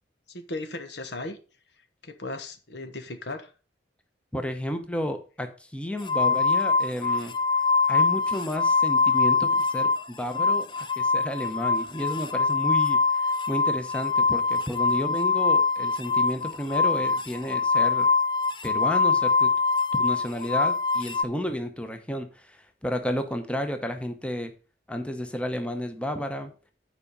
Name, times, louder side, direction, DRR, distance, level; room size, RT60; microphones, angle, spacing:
voice 1, 0.3-1.4 2.0-3.5, left 2 dB, 80° left, 7 dB, 1.3 m, -36 dB
voice 2, 4.3-7.3 7.9-18.1 18.6-19.5 19.9-24.5 24.9-26.5, equal, 5° left, 6 dB, 0.9 m, -32 dB
sound 1, 6.0-10.0 10.3-21.2, left 4 dB, 25° left, 0.5 m, -24 dB
9.7 x 4.9 x 5.3 m, 0.35 s
head